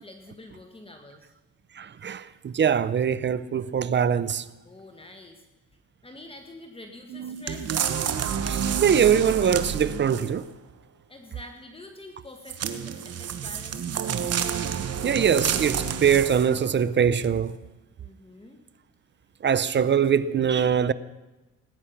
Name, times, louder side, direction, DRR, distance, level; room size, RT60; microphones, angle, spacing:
voice 1, 0.0-1.3 4.6-5.4 6.0-7.8 11.1-13.9 18.0-18.6, left 2 dB, 20° left, 1.6 m, -46 dB
voice 2, 1.7-4.5 7.1-7.4 8.4-10.5 15.0-17.6 19.4-20.9, right 7 dB, 35° right, 0.6 m, -23 dB
sound 1, 7.5-10.5 12.5-16.6 17.2-17.3, right 8 dB, 55° right, 1.2 m, -29 dB
19.0 x 9.8 x 5.9 m
cardioid pair, 90°, 30 cm